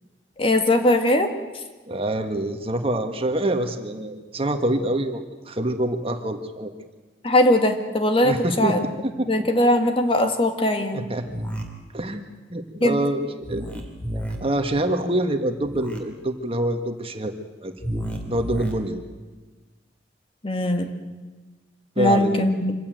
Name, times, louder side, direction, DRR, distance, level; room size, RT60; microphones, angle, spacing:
voice 1, 0.4-1.3 7.2-8.8 9.3-11.1 12.8-13.0 20.4-20.9 22.0-22.7, left 1 dB, 30° left, 6 dB, 1.8 m, -20 dB
voice 2, 1.9-6.7 8.2-9.5 10.9-11.3 11.9-13.8 14.4-17.3 17.6-17.7 18.3-19.0 22.0-22.4, right 1 dB, 35° right, 6 dB, 1.7 m, -26 dB
sound 1, 11.3-11.6 13.4-14.4 15.6-16.0 17.8-18.7, equal, 10° left, 3.3 m, -31 dB
26.0 x 16.0 x 9.2 m, 1.3 s
head